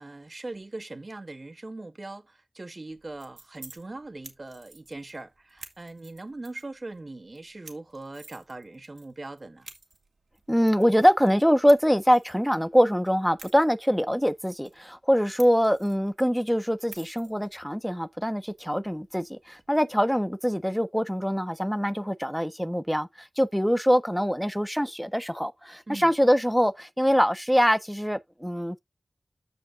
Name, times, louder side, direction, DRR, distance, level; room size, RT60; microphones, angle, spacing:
voice 1, 0.0-9.7 25.9-26.1, right 2 dB, 50° right, 1.9 m, -40 dB
sound 1, 2.9-19.8, right 3 dB, 85° right, 2.7 m, -53 dB
voice 2, 10.5-28.8, equal, ahead, 1.3 m, -24 dB
14.5 x 5.1 x 2.7 m
wide cardioid pair, 50°, 0 cm